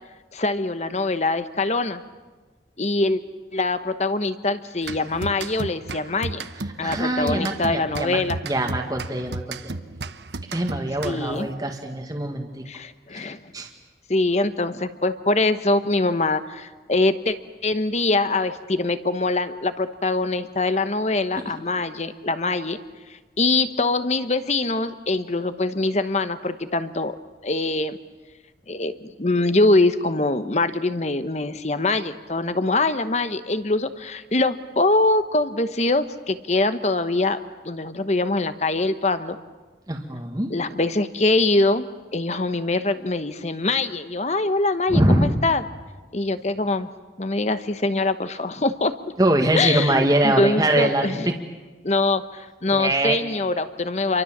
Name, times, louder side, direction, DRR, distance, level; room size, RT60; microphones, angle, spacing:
voice 1, 0.3-2.0 2.8-3.2 3.5-6.5 6.8-8.4 11.0-11.5 12.7-13.4 14.1-17.4 17.6-22.8 23.4-27.2 27.4-28.0 28.7-39.4 40.5-41.9 42.1-45.6 46.1-46.9 47.2-48.9 49.6-51.3 51.8-54.2, left 2 dB, 40° left, 11 dB, 1.0 m, -23 dB
sound 1, 4.8-11.5, right 3 dB, 70° right, 1.0 m, -34 dB
voice 2, 6.8-9.6 10.5-12.5 13.5-13.7 39.9-40.5 44.9-45.4 49.2-51.3 52.7-53.2, right 1 dB, 20° right, 2 dB, 1.6 m, -23 dB
28.0 x 23.5 x 7.3 m, 1.3 s
head